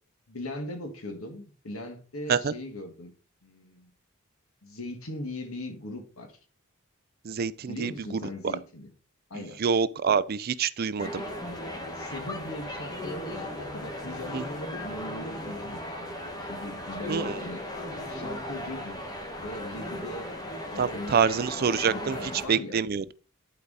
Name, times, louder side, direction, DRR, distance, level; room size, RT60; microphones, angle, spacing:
voice 1, 0.3-3.1 3.4-3.9 4.6-6.4 7.7-8.9 9.3-9.6 11.9-17.6 18.1-19.0 19.4-20.3 20.7-22.8, left 1 dB, 80° left, 1.7 m, -39 dB
voice 2, 7.2-8.6 9.3-11.2 14.3-14.4 17.1-17.4 20.8-22.2 22.5-23.0, right 6 dB, 45° right, 0.4 m, -26 dB
sound 1, 11.0-22.5, left 1 dB, 20° left, 1.4 m, -37 dB
10.5 x 4.7 x 4.0 m
head